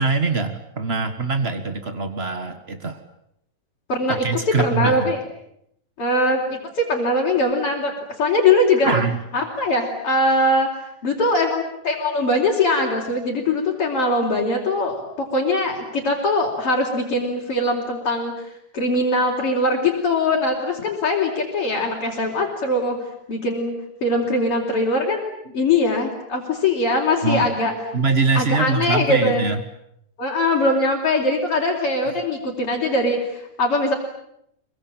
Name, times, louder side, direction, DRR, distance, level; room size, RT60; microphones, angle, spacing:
voice 1, 0.0-3.0 4.1-5.1 8.8-9.2 27.2-27.5 27.9-29.6, right 4 dB, 70° right, 8 dB, 0.5 m, -23 dB
voice 2, 3.9-4.2 4.6-5.2 6.0-7.9 8.2-8.9 9.3-23.0 23.3-25.2 25.5-27.7 28.3-29.5 30.2-33.9, left 2 dB, 40° left, -2 dB, 4.8 m, -21 dB
26.0 x 23.5 x 9.0 m, 0.76 s
omnidirectional pair, 3.9 m